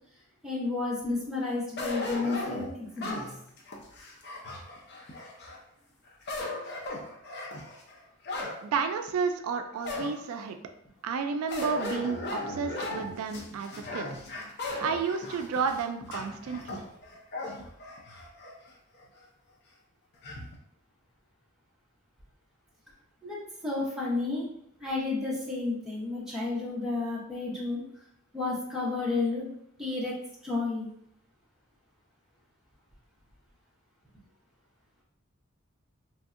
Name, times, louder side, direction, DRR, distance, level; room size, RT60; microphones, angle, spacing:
voice 1, 0.4-3.1 23.2-23.4 23.6-24.5 24.8-27.8 28.3-29.5 29.8-30.2 30.4-30.9, left 3 dB, ahead, -7 dB, 0.7 m, -31 dB
sound 1, 1.8-5.6 6.1-8.6 9.1-9.2 9.8-10.4 11.5-18.5 19.0-19.1 20.2-20.6, left 2 dB, 50° left, 0.5 m, -37 dB
voice 2, 8.6-10.6 11.0-14.1 14.8-16.9, right 5 dB, 85° right, 7 dB, 0.3 m, -31 dB
3.1 x 2.6 x 2.4 m, 0.72 s
head